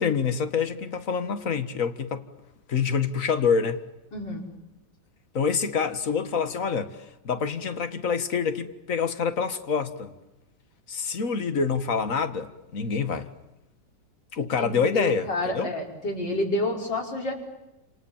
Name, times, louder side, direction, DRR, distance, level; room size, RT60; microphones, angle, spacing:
voice 1, 0.0-2.3 2.7-3.8 5.3-10.1 10.9-13.3 14.3-15.3 15.5-15.7, left 6 dB, 50° left, 2.1 m, -26 dB
voice 2, 4.1-4.4 14.6-17.3, left 1 dB, 80° left, 5.9 m, -29 dB
29.5 x 28.0 x 7.3 m
omnidirectional pair, 1.9 m